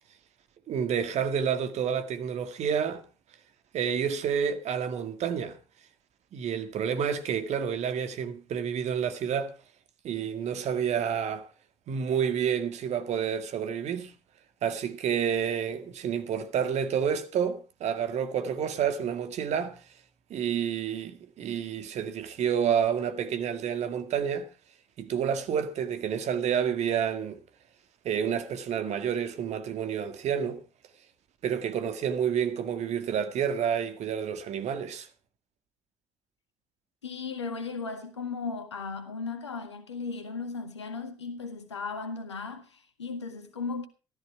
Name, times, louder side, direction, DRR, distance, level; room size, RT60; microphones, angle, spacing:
voice 1, 0.7-3.0 3.7-5.6 6.3-9.5 10.0-11.5 11.9-14.1 14.6-19.8 20.3-24.5 25.0-27.4 28.0-30.6 31.4-35.1, right 8 dB, 50° right, 1.9 m, -29 dB
voice 2, 37.0-43.9, left 4 dB, 85° left, 1.7 m, -36 dB
14.0 x 13.5 x 4.6 m
figure-of-eight pair, 50°, 14 cm